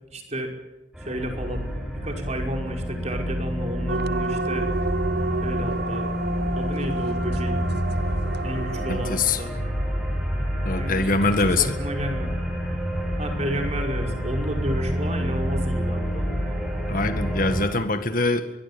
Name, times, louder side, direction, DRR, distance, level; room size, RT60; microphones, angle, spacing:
voice 1, 0.1-0.5 1.0-1.6 2.0-4.7 5.4-6.1 6.5-7.6 8.4-9.5 10.7-11.1 11.4-12.4 13.2-16.3, equal, 35° right, 3 dB, 5.4 m, -32 dB
sound 1, 0.9-17.7, equal, 5° right, 7.1 m, -28 dB
sound 2, 3.9-9.2, right 4 dB, 55° right, 1.1 m, -30 dB
voice 2, 8.9-9.4 10.7-11.8 16.9-18.5, left 3 dB, 45° left, 9 dB, 1.8 m, -23 dB
23.0 x 22.5 x 8.9 m, 1.0 s
head